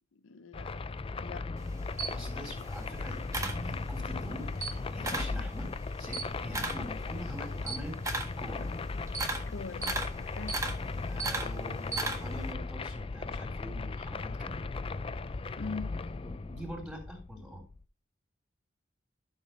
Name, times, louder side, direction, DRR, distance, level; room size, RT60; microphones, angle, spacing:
voice 1, 0.1-0.8 1.2-1.5 9.5-10.6 15.6-16.0, left 4 dB, 75° left, 0.6 m, -42 dB
sound 1, 0.5-17.9, left 3 dB, 30° left, 0.4 m, -37 dB
Camera, 1.6-4.2 4.5-5.4 5.8-12.5, right 3 dB, 15° right, 1.6 m, -36 dB
voice 2, 2.1-5.7 6.0-8.0 8.4-8.7 10.3-10.6 11.1-14.6 16.2-17.6, equal, ahead, 3.3 m, -44 dB
12.0 x 6.6 x 3.2 m
head